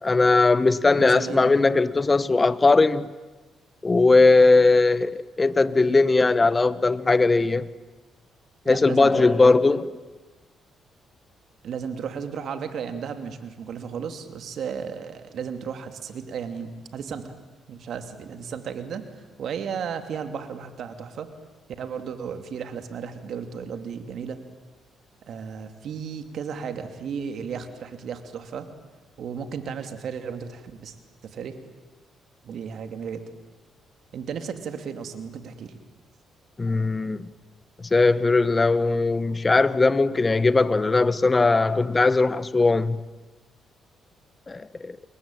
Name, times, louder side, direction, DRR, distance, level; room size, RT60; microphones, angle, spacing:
voice 1, 0.0-3.1 3.8-7.7 8.7-9.9 36.6-37.3 37.8-43.0 44.5-45.0, left 3 dB, 25° left, 1.1 m, -19 dB
voice 2, 1.0-1.5 8.6-9.6 11.6-17.4 17.7-19.1 19.4-21.3 21.8-24.4 25.2-28.7 29.2-30.9 31.3-31.6 32.4-33.2 34.1-35.8, right 7 dB, 65° right, 2.7 m, -34 dB
28.5 x 21.5 x 9.1 m
cardioid pair, 90°, 0 cm